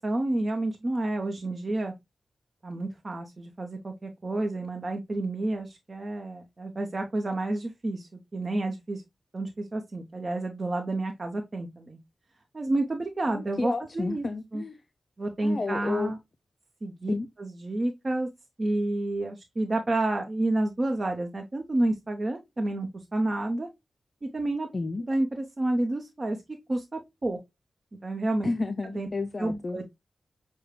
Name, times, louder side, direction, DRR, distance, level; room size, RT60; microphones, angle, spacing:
voice 1, 0.0-1.9 2.6-9.0 9.3-12.0 12.5-14.3 14.5-14.6 15.2-16.2 16.8-17.1 17.4-18.3 18.6-23.7 24.2-24.7 25.1-26.4 26.7-27.4 28.0-28.5 28.9-29.1 29.4-29.8, right 2 dB, 45° right, 0.8 m, -29 dB
voice 2, 13.2-14.8 15.4-16.1 17.1-17.3 24.7-25.0 28.4-29.8, left 3 dB, 50° left, 0.4 m, -31 dB
6.4 x 2.2 x 3.1 m
cardioid pair, 40°, 0 cm